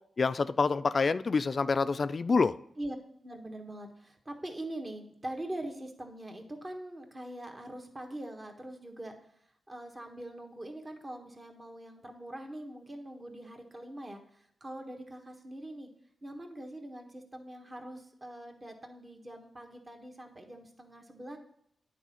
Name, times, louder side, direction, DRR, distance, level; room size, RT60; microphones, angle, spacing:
voice 1, 0.2-2.6, left 4 dB, 55° left, 13 dB, 0.3 m, -27 dB
voice 2, 3.2-9.1 9.7-15.9 16.2-21.4, right 1 dB, 35° right, 3 dB, 1.5 m, -43 dB
9.3 x 4.3 x 5.7 m, 0.71 s
cardioid pair, 50°, 0 cm